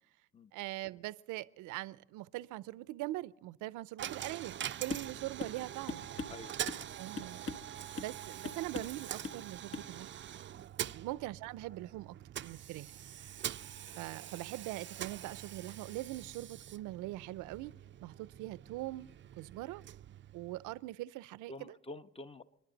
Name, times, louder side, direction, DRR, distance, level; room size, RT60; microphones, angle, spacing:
voice 1, 0.5-4.5 4.8-6.1 6.9-7.6 8.0-10.1 10.9-12.1 12.4-12.9 14.0-17.7 18.0-19.1 19.4-19.8 20.3-21.7, right 17 dB, 85° right, 0.6 m, -42 dB
Coin (dropping), 4.0-20.9, right 10 dB, 40° right, 0.4 m, -44 dB
sound 1, 4.9-5.1 5.4-5.6 5.9-6.9 7.2-7.7 8.0-8.2 8.4-9.0 9.2-9.4 9.7-9.9, left 4 dB, 45° left, 1.2 m, -41 dB
voice 2, 6.3-6.9 10.8-11.0 21.5-22.4, left 2 dB, 20° left, 1.0 m, -49 dB
29.5 x 10.5 x 4.0 m
supercardioid pair, 70°, 30 cm